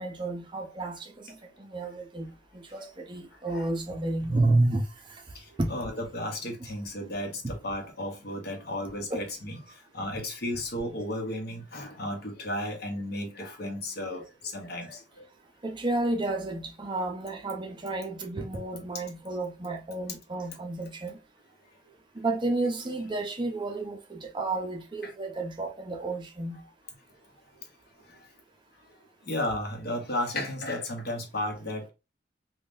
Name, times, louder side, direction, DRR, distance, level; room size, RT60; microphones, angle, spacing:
voice 1, 0.0-5.2 5.6-5.8 6.6-6.7 7.4-7.5 9.1-9.2 15.6-21.2 22.2-26.6, right 2 dB, 25° right, 0.5 m, -31 dB
voice 2, 5.7-15.0 25.0-25.1 28.1-28.2 29.2-31.9, left 1 dB, 60° left, 0.9 m, -34 dB
3.5 x 2.2 x 2.5 m
head